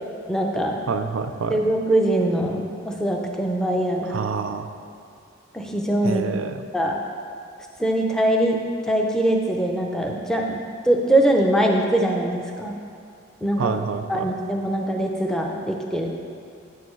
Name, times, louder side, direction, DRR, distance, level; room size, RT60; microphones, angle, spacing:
voice 1, 0.3-0.8 1.5-4.2 5.5-6.2 6.7-7.0 7.8-8.6 8.9-12.7 13.4-13.7 14.1-16.1, right 1 dB, 5° left, 0 dB, 0.6 m, -22 dB
voice 2, 0.9-1.6 4.1-4.7 6.0-6.6 13.6-14.3, right 5 dB, 75° right, 8 dB, 0.5 m, -27 dB
9.3 x 8.4 x 3.1 m, 2.3 s
head